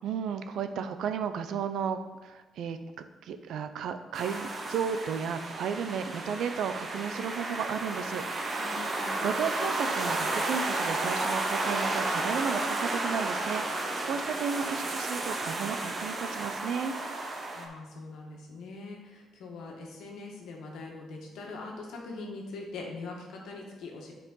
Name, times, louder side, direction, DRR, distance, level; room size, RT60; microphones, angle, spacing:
voice 1, 0.0-8.7 9.2-17.0, right 7 dB, 75° right, 10 dB, 0.5 m, -34 dB
sound 1, 4.1-17.7, right 2 dB, 40° right, 1.0 m, -32 dB
voice 2, 8.6-9.3 17.5-24.1, left 3 dB, 80° left, 0 dB, 1.5 m, -42 dB
8.8 x 4.8 x 3.9 m, 1.2 s
cardioid pair, 90°, 0 cm